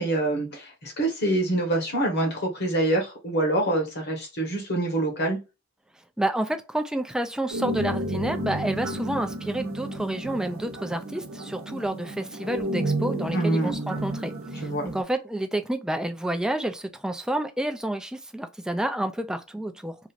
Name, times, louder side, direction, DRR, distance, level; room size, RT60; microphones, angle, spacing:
voice 1, 0.0-5.4 13.3-13.8 14.6-14.9, right 1 dB, 55° left, 1.2 m, -25 dB
voice 2, 6.2-20.0, right 1 dB, 5° right, 0.3 m, -29 dB
sound 1, 7.5-15.0, right 1 dB, 70° right, 0.7 m, -31 dB
3.0 x 2.5 x 2.4 m
head